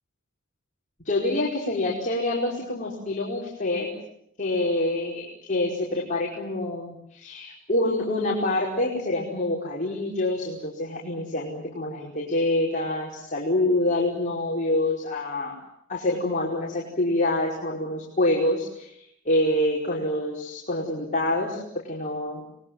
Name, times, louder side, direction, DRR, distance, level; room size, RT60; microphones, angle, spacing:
voice 1, 1.1-3.9 4.4-15.6 15.9-22.6, left 1 dB, 40° left, -3 dB, 5.3 m, -26 dB
29.5 x 21.0 x 9.4 m, 0.76 s
head